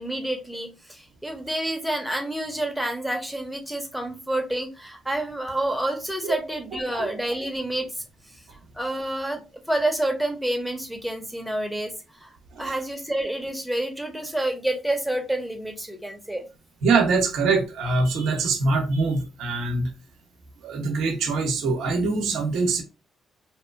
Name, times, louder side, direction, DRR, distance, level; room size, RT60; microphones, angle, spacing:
voice 1, 0.0-7.9 8.8-9.4 9.7-11.9 12.2-12.3 12.6-16.5, right 1 dB, ahead, 0.9 m, -28 dB
voice 2, 6.7-7.1 12.5-12.7 16.8-19.9 20.6-22.8, right 3 dB, 75° right, 0.6 m, -24 dB
2.7 x 2.2 x 2.2 m
supercardioid pair, 55°, 0 cm